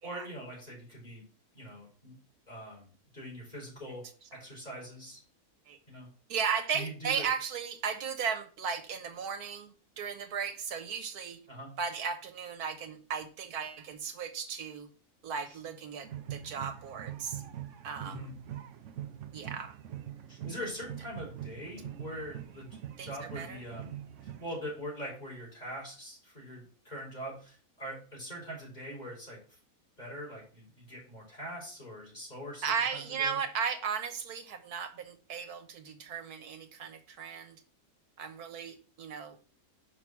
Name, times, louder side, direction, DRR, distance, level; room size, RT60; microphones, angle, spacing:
voice 1, 0.0-1.2 1.5-2.1 2.5-4.0 4.3-5.2 5.9-6.1 6.7-7.3 11.5-11.7 15.5-15.6 18.0-18.4 20.3-22.7 23.0-23.9 24.2-29.4 30.0-32.7 32.9-33.4, equal, 25° left, 4.3 m, -42 dB
voice 2, 6.3-11.4 11.8-14.9 15.2-17.4 17.8-18.3 19.3-19.7 23.0-23.6 32.6-37.6 38.2-39.4, right 6 dB, 80° right, 1.6 m, -36 dB
sound 1, 16.0-24.8, right 11 dB, 60° right, 0.9 m, -43 dB
6.0 x 4.7 x 6.0 m
omnidirectional pair, 1.6 m